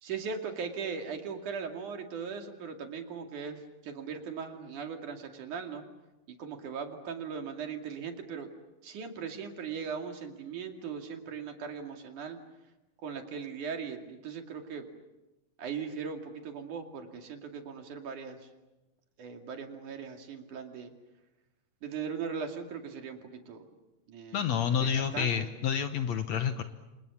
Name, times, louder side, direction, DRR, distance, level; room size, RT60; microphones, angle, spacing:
voice 1, 0.0-5.8 6.3-8.5 8.8-12.4 13.0-14.9 15.6-18.5 19.2-20.9 21.8-23.7 24.1-24.4 24.8-25.5, right 6 dB, 65° right, 4 dB, 3.8 m, -39 dB
voice 2, 24.3-26.6, left 8 dB, 65° left, 9 dB, 2.0 m, -29 dB
29.5 x 26.5 x 7.3 m, 1.0 s
omnidirectional pair, 3.9 m